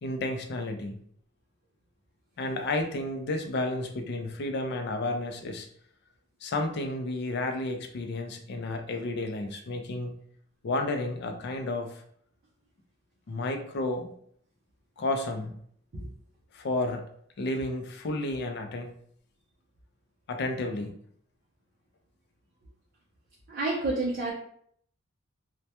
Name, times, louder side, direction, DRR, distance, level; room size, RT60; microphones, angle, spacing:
voice 1, 0.0-1.0 2.4-5.7 6.4-10.2 10.6-12.0 13.3-14.1 15.0-15.5 16.5-17.0 17.4-18.9 20.3-20.9, left 2 dB, 55° left, 5 dB, 0.4 m, -31 dB
voice 2, 23.5-24.3, right 2 dB, 50° right, -4 dB, 0.5 m, -29 dB
2.1 x 2.1 x 2.8 m, 0.64 s
head